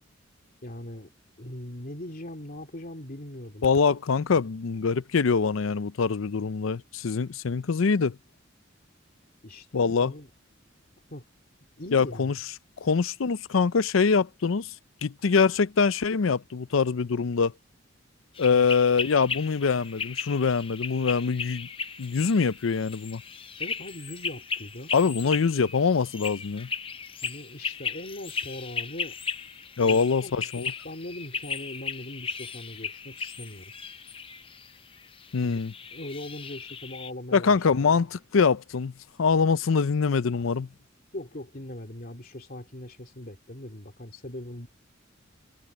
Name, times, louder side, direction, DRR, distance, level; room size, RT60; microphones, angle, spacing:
voice 1, 0.6-1.1 1.4-3.7 9.4-10.3 11.1-11.3 11.8-12.4 23.6-24.9 27.2-29.2 29.8-30.5 30.8-33.7 35.4-35.6 35.9-37.9 40.3-40.4 41.1-44.7, left 1 dB, 45° left, 2.8 m, -40 dB
voice 2, 3.6-8.2 9.7-10.1 11.9-12.3 12.8-14.7 15.0-17.5 18.4-21.7 22.0-23.2 24.9-26.7 29.8-30.7 35.3-35.7 37.3-38.9 39.2-40.7, left 5 dB, 85° left, 0.6 m, -24 dB
sound 1, 18.3-37.1, left 6 dB, 25° left, 0.7 m, -36 dB
head